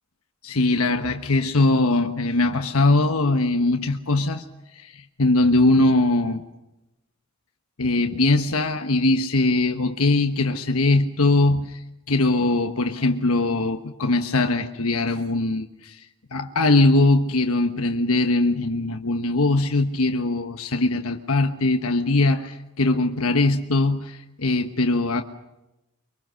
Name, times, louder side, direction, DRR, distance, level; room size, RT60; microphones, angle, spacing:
voice 1, 0.4-4.4 4.7-6.4 7.8-11.8 12.1-16.0 16.3-25.2, left 2 dB, 90° left, 5 dB, 1.2 m, -21 dB
24.0 x 24.0 x 6.4 m, 0.94 s
head